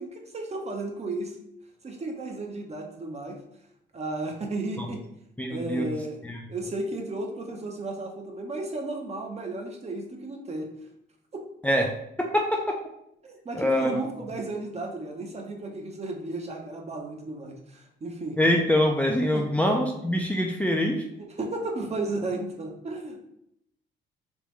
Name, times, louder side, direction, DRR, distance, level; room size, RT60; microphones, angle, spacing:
voice 1, 0.0-1.4 1.8-3.4 3.9-5.0 5.5-6.2 6.5-10.7 11.3-11.5 13.2-18.4 19.3-19.5 21.4-23.2, right 2 dB, 35° right, 2 dB, 0.7 m, -34 dB
voice 2, 5.4-6.0 6.2-6.4 11.6-11.9 12.2-12.8 13.6-14.3 18.4-21.0, left 1 dB, 5° left, 0 dB, 0.4 m, -24 dB
3.6 x 3.0 x 3.1 m, 0.77 s
cardioid pair, 90°, 20 cm